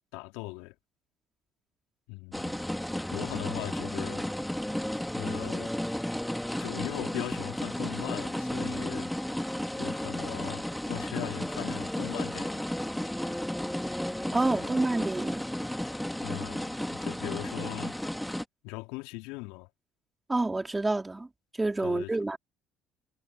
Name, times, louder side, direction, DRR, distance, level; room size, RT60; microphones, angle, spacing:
voice 1, 0.1-0.7 2.1-2.6 3.1-4.3 5.1-5.7 6.6-9.1 9.8-12.6 14.3-14.8 16.2-18.0 18.6-19.7 21.8-22.1, left 25 dB, 70° left, 3.0 m, -39 dB
sound 1, 2.3-18.4, left 1 dB, 5° left, 2.4 m, -33 dB
voice 2, 14.3-15.4 20.3-21.3 21.6-22.4, right 2 dB, 15° right, 4.7 m, -28 dB
hypercardioid pair, 60°, 0 cm